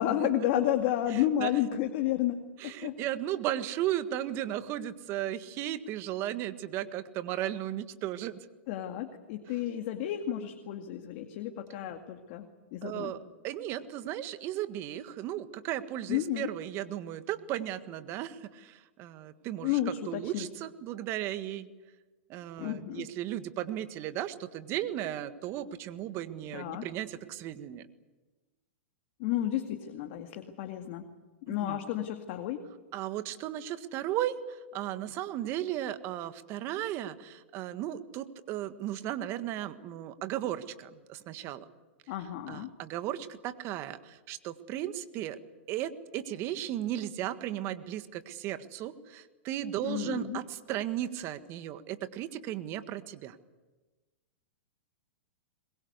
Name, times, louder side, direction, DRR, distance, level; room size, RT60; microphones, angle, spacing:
voice 1, 0.0-2.9 8.7-13.1 16.1-16.5 19.6-20.5 22.6-23.1 26.5-26.9 29.2-31.1 31.5-32.6 42.1-42.7 49.8-50.4, left 12 dB, 50° left, 5 dB, 2.1 m, -32 dB
voice 2, 1.1-1.5 2.6-8.5 12.8-21.7 22.3-27.9 31.5-31.8 32.9-41.6 42.5-45.4 45.7-53.4, right 12 dB, 40° right, 11 dB, 1.6 m, -35 dB
22.5 x 22.0 x 8.2 m, 1.2 s
hypercardioid pair, 120°, 7 cm